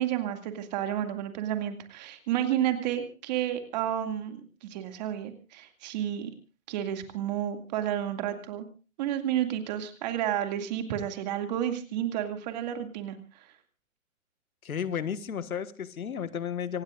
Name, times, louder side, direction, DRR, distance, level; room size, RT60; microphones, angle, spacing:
voice 1, 0.0-6.3 6.7-8.7 9.0-13.2, right 11 dB, 30° right, 7 dB, 2.3 m, -31 dB
voice 2, 14.6-16.8, left 8 dB, 80° left, 12 dB, 1.6 m, -33 dB
26.0 x 18.5 x 2.5 m, 0.34 s
hypercardioid pair, 155°, 42 cm